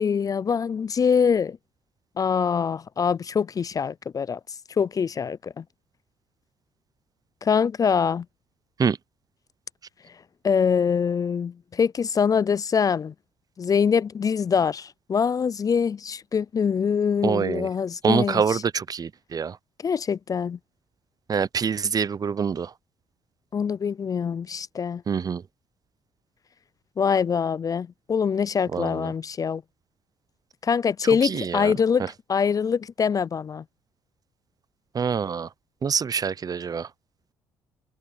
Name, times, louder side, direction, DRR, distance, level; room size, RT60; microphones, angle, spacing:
voice 1, 0.0-1.6 2.2-4.4 4.8-5.6 7.4-8.3 10.0-10.2 10.4-13.1 13.6-18.6 19.8-20.6 23.5-25.0 27.0-29.6 30.6-33.6, left 6 dB, 35° left, 0.4 m, -24 dB
voice 2, 17.2-17.7 18.0-19.6 21.3-22.7 25.1-25.4 28.7-28.9 31.4-31.7 34.9-35.5 35.8-36.9, right 6 dB, 40° right, 0.7 m, -25 dB
supercardioid pair, 65°, 10 cm